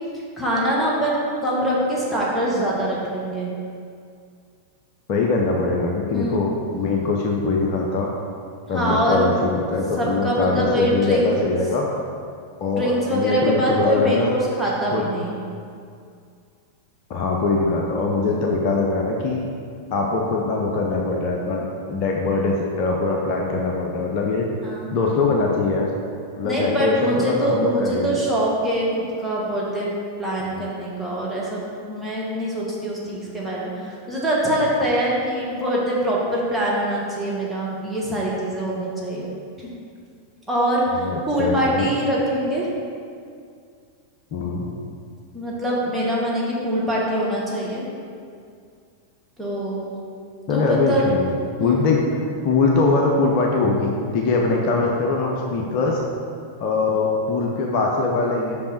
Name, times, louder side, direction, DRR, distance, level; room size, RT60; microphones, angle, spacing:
voice 1, 0.1-3.5 6.1-6.5 8.7-9.2 10.0-11.3 12.8-15.4 18.2-18.4 24.6-25.0 26.4-29.9 30.2-39.3 39.6-39.7 40.5-42.7 45.3-47.8 49.4-49.9 50.5-51.0 51.6-51.8, equal, 5° right, -6 dB, 1.6 m, -23 dB
voice 2, 5.1-8.1 8.7-11.9 12.6-14.3 14.9-15.1 17.1-19.5 19.9-24.5 24.9-25.9 26.4-28.1 30.6-30.7 41.0-41.9 44.3-44.7 50.5-51.3 51.6-52.0 52.4-56.0 56.6-58.6, left 3 dB, 40° left, 0 dB, 0.7 m, -22 dB
5.6 x 5.3 x 4.4 m, 2.3 s
figure-of-eight pair, 90°, 0 cm